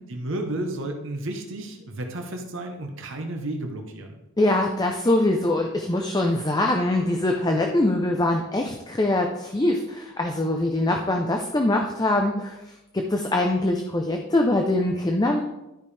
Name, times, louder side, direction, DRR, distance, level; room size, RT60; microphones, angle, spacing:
voice 1, 0.1-4.2, right 1 dB, 60° right, 3 dB, 0.9 m, -32 dB
voice 2, 4.4-12.6 12.9-15.4, left 1 dB, 20° left, 2 dB, 0.5 m, -23 dB
12.0 x 5.2 x 3.3 m, 0.96 s
head